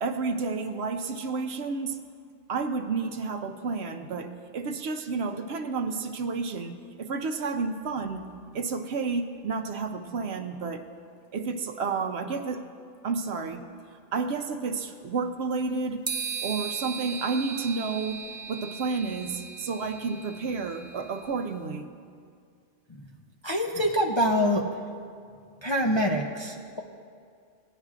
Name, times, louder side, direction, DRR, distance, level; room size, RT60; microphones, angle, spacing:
voice 1, 0.0-2.0 2.5-8.3 8.5-10.8 11.3-12.6 13.0-13.7 14.1-16.1 16.4-21.9, right 4 dB, 65° right, 7 dB, 0.8 m, -31 dB
sound 1, 16.1-21.4, right 6 dB, 35° right, 0.5 m, -37 dB
voice 2, 23.4-24.7 25.6-26.8, equal, 40° left, -1 dB, 0.4 m, -25 dB
18.0 x 10.0 x 2.4 m, 2.2 s
omnidirectional pair, 1.2 m